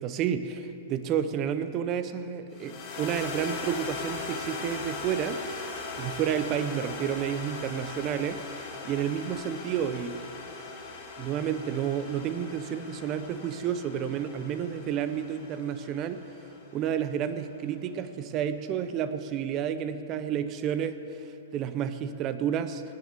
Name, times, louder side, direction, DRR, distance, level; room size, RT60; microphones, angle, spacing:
voice 1, 0.0-5.4 6.0-10.2 11.2-16.2 16.7-21.0 21.5-22.8, right 8 dB, 25° right, 11 dB, 0.6 m, -30 dB
sound 1, 2.5-17.0, left 4 dB, 30° left, 2.2 m, -40 dB
18.0 x 6.6 x 9.5 m, 3.0 s
hypercardioid pair, 160°, 0 cm